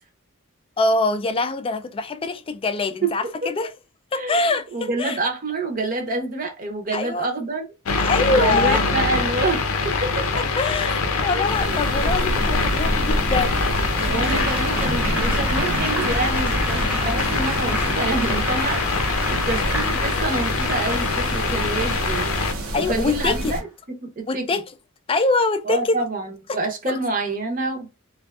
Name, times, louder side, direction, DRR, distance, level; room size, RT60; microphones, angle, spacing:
voice 1, 0.8-3.7 4.1-5.2 6.9-7.3 8.0-8.8 10.4-13.7 22.7-23.5 24.3-24.6 25.1-26.0 26.9-27.0, left 3 dB, 25° left, 0.3 m, -24 dB
voice 2, 3.0-3.5 4.2-4.4 4.7-7.6 8.3-10.3 11.3-11.8 14.0-18.8 19.1-22.4 22.9-23.7 24.0-24.4 25.6-27.9, right 3 dB, 40° right, 0.7 m, -27 dB
sound 1, 7.9-22.5, left 4 dB, 85° left, 0.5 m, -24 dB
sound 2, 11.5-23.6, right 1 dB, 90° right, 0.8 m, -28 dB
Applause, 13.5-22.4 23.2-23.6, equal, 5° right, 0.8 m, -32 dB
2.5 x 2.3 x 2.3 m
head